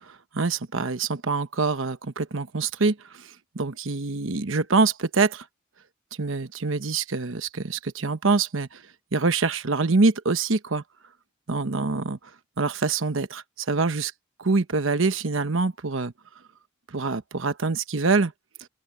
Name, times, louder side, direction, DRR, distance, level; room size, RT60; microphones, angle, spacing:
voice 1, 0.3-5.4 6.2-8.8 9.1-10.8 11.5-12.2 12.6-14.1 14.4-16.1 16.9-18.3, right 3 dB, 80° right, 1.1 m, -25 dB
open air
head